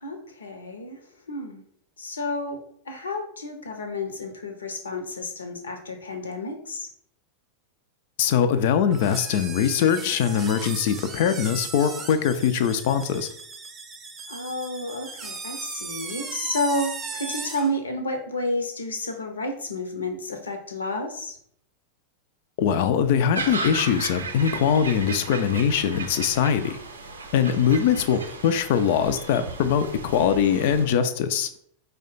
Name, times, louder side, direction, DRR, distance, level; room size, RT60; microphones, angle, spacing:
voice 1, 0.0-1.0 1.3-1.6 2.0-6.9 14.3-21.4 27.4-27.8, left 1 dB, 70° left, 5 dB, 0.7 m, -31 dB
voice 2, 8.2-13.3 22.6-26.8 27.3-31.5, left 8 dB, 50° left, 11 dB, 0.4 m, -22 dB
sound 1, 8.9-17.7, right 4 dB, 25° right, 0.6 m, -37 dB
sound 2, 23.3-30.9, right 3 dB, 70° right, 0.5 m, -35 dB
4.8 x 2.2 x 4.0 m, 0.64 s
figure-of-eight pair, 90°, 0 cm